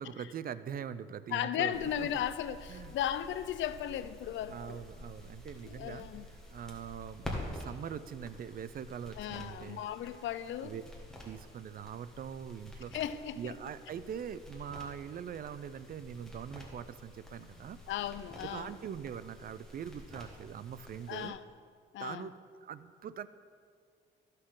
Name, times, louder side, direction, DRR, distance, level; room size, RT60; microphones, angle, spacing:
voice 1, 0.0-2.2 2.7-2.9 4.5-6.1 6.5-9.8 10.6-10.8 11.2-12.9 13.4-17.8 18.4-21.3 22.0-22.3 22.6-23.3, right 8 dB, 45° right, 0.4 m, -42 dB
voice 2, 1.3-4.8 5.6-6.3 9.2-10.7 12.9-13.6 17.9-18.8 21.1-21.4 21.9-22.3, left 10 dB, 75° left, 0.5 m, -36 dB
sound 1, 1.7-21.3, left 1 dB, ahead, 1.9 m, -49 dB
14.0 x 6.6 x 3.8 m
cardioid pair, 90°, 20 cm